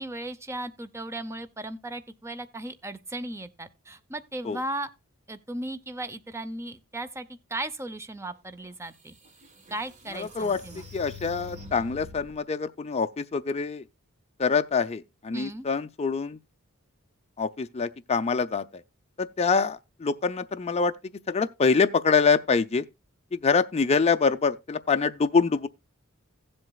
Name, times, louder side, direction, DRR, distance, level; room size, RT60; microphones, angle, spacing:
voice 1, 0.0-4.9 5.3-9.2 9.7-10.9 15.3-15.7, right 1 dB, 15° right, 0.6 m, -36 dB
sound 1, 8.6-8.7 9.2-12.4, left 3 dB, 35° right, 1.4 m, -45 dB
voice 2, 10.1-13.9 14.4-16.4 17.4-18.8 19.2-20.9 21.3-22.9 23.3-25.7, left 5 dB, 30° left, 0.5 m, -25 dB
16.0 x 7.8 x 2.3 m
head